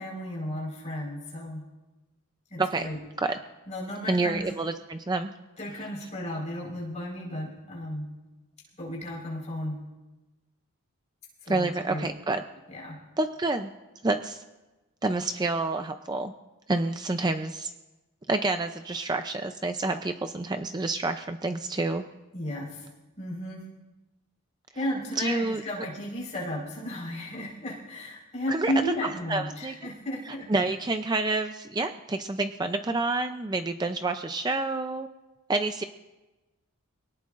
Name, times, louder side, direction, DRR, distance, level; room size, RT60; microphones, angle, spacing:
voice 1, 0.0-1.6 2.5-3.0 3.7-4.5 5.6-8.1 8.8-9.8 11.4-12.1 12.7-13.0 22.3-22.9 23.2-23.6 24.7-30.5, left 1 dB, 30° left, -3 dB, 4.6 m, -34 dB
voice 2, 4.1-5.3 11.5-12.4 13.2-13.7 14.0-14.4 15.0-16.3 16.7-17.7 18.3-22.0 25.2-25.6 28.5-28.7 29.3-29.7 30.5-35.1 35.5-35.8, right 2 dB, 20° right, 7 dB, 0.5 m, -28 dB
24.0 x 18.0 x 2.5 m, 1.1 s
head